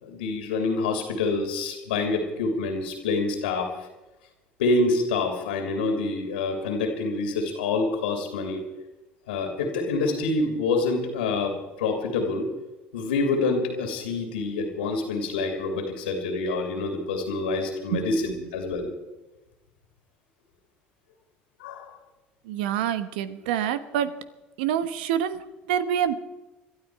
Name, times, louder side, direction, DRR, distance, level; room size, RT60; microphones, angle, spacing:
voice 1, 0.0-3.7 4.6-8.6 9.3-12.5 12.9-18.9 21.6-21.8, left 3 dB, 85° left, 4 dB, 2.8 m, -27 dB
voice 2, 22.4-24.1 24.6-26.1, right 9 dB, 80° right, 13 dB, 1.2 m, -26 dB
22.0 x 12.5 x 4.8 m, 1.1 s
hypercardioid pair, 70°, 5 cm